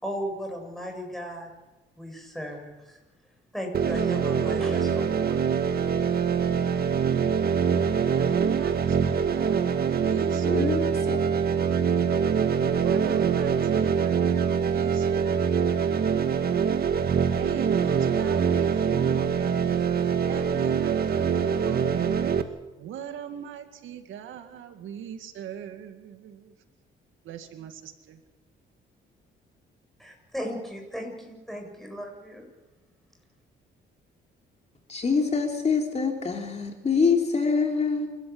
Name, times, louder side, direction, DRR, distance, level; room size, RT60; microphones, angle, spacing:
voice 1, 0.0-1.5 2.0-3.0 3.5-5.4 30.0-32.5, equal, ahead, 1 dB, 7.9 m, -36 dB
sound 1, 3.7-22.4, right 7 dB, 50° right, 1.8 m, -24 dB
voice 2, 7.9-10.9 12.6-16.4 17.4-22.4 22.8-26.6 27.2-28.2, right 9 dB, 80° right, 7 dB, 2.1 m, -40 dB
voice 3, 10.4-11.2 34.9-38.1, left 5 dB, 35° left, 3 dB, 3.4 m, -25 dB
28.5 x 13.0 x 8.7 m, 1.1 s
cardioid pair, 90°, 20 cm